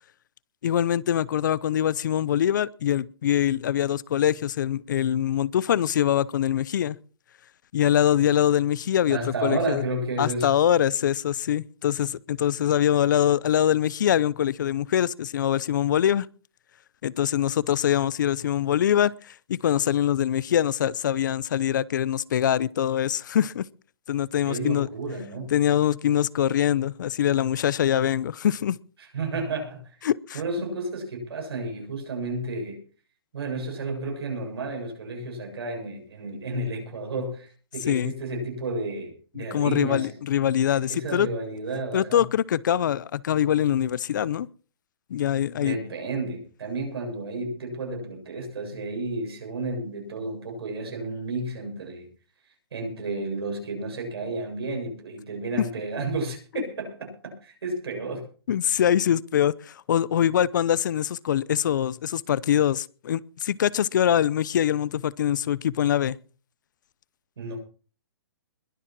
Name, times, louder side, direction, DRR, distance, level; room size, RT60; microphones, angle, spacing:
voice 1, 0.6-7.0 7.7-9.8 10.2-16.3 17.0-23.7 24.1-24.9 25.5-28.8 30.0-30.4 37.9-38.1 39.4-41.3 41.9-44.5 45.1-45.8 58.5-66.2, left 10 dB, 50° left, 0.6 m, -23 dB
voice 2, 9.1-10.5 24.4-25.5 29.1-30.0 30.3-32.8 33.3-40.2 40.7-42.3 45.6-52.1 52.7-58.3 67.4-67.6, right 2 dB, 75° right, 7.2 m, -32 dB
21.5 x 7.4 x 6.0 m
hypercardioid pair, 165°, 13 cm